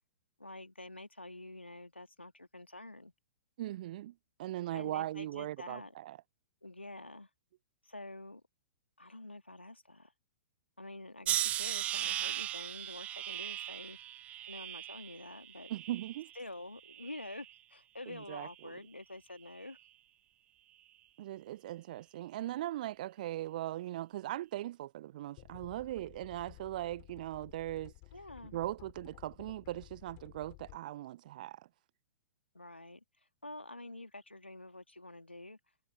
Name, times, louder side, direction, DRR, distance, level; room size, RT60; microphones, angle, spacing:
voice 1, 0.4-3.1 4.7-5.9 6.6-7.3 7.8-8.4 9.0-10.1 10.8-14.0 14.5-15.7 16.4-19.8 28.1-28.5 32.5-33.0 33.4-35.6, left 2 dB, 85° left, 2.7 m, -47 dB
voice 2, 3.6-6.2 15.7-16.3 18.1-18.8 21.2-27.9 28.5-31.7, right 14 dB, 45° right, 0.8 m, -39 dB
sound 1, 11.3-16.4 16.8-17.5 18.3-18.6, right 12 dB, 20° right, 1.1 m, -38 dB
sound 2, 25.4-30.8, left 40 dB or more, 35° left, 5.1 m, -55 dB
figure-of-eight pair, 110°, 6 cm